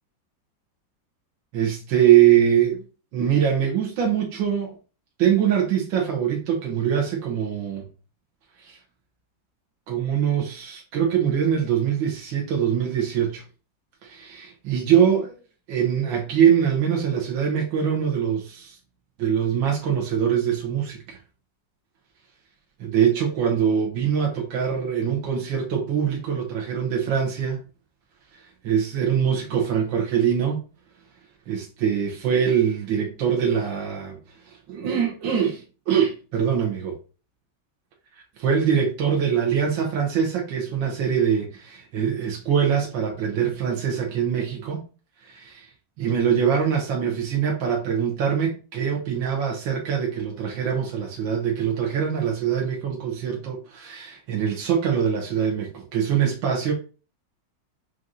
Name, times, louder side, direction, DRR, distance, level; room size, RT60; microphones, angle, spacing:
voice 1, 1.5-2.8 3.1-4.8 5.2-7.9 8.6-8.8 9.9-13.4 14.0-15.4 15.7-18.8 19.2-21.2 22.8-27.6 28.6-30.6 31.5-34.2 34.5-37.0 38.4-44.8 45.2-45.7 46.0-56.7, right 8 dB, 90° right, 1.6 m, -23 dB
6.1 x 2.6 x 2.6 m
omnidirectional pair, 2.0 m